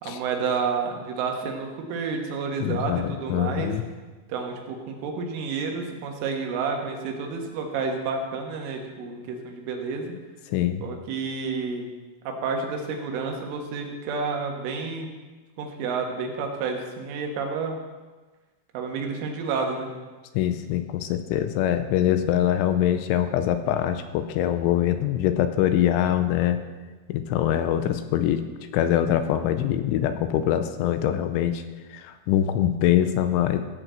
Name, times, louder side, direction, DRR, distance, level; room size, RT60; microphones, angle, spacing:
voice 1, 0.0-3.7 4.3-10.2 10.8-11.8 12.3-15.1 15.6-17.8 18.7-19.9, right 5 dB, 80° right, 2 dB, 4.0 m, -30 dB
voice 2, 2.6-3.8 10.5-10.8 20.3-26.6 27.1-28.4 28.7-31.6 31.9-33.6, left 11 dB, 85° left, 9 dB, 3.1 m, -23 dB
16.0 x 5.4 x 7.6 m, 1.3 s
omnidirectional pair, 5.6 m